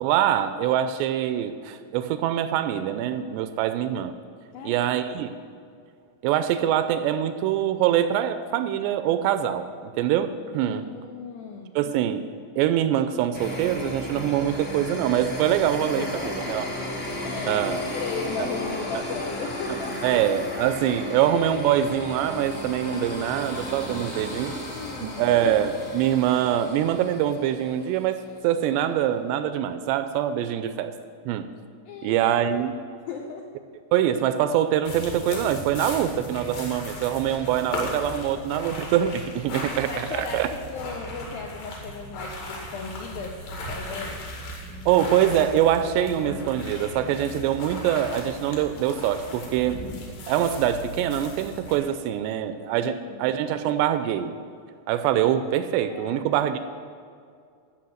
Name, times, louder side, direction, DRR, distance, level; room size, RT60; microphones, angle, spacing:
voice 1, 0.0-4.1 4.6-5.4 6.2-10.9 11.8-12.3 12.6-16.1 16.5-16.7 17.5-17.8 18.4-18.5 20.0-24.6 25.0-30.9 31.3-31.5 32.0-32.7 33.9-40.5 44.9-49.8 50.3-54.3 54.9-56.6, right 10 dB, 85° right, 10 dB, 2.6 m, -24 dB
voice 2, 4.5-4.9 10.6-11.7 16.0-16.6 17.2-17.6 17.9-20.2 24.3-25.2 31.9-32.2 33.1-33.5 39.9-43.4 43.7-44.2 52.8-53.3 55.9-56.4, left 5 dB, 85° left, 2 dB, 2.1 m, -36 dB
sound 1, 13.3-28.1, left 1 dB, 35° left, 0.9 m, -34 dB
sound 2, 34.8-51.8, left 1 dB, 60° left, 3.4 m, -37 dB
13.0 x 6.1 x 7.7 m, 2.2 s
omnidirectional pair, 5.1 m